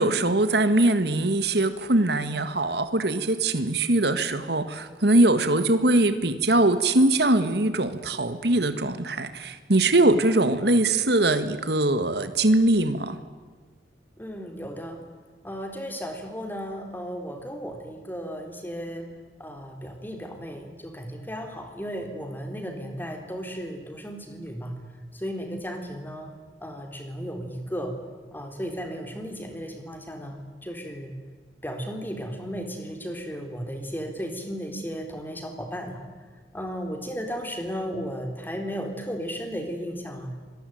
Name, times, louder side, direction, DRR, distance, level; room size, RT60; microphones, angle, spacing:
voice 1, 0.0-13.2, right 2 dB, 65° right, 10 dB, 1.7 m, -22 dB
voice 2, 14.2-15.0 15.4-19.1 19.4-24.8 25.1-26.3 26.6-28.0 28.3-31.1 31.6-36.0 36.5-40.3, equal, 10° left, 4 dB, 3.7 m, -35 dB
26.0 x 19.5 x 9.3 m, 1.5 s
head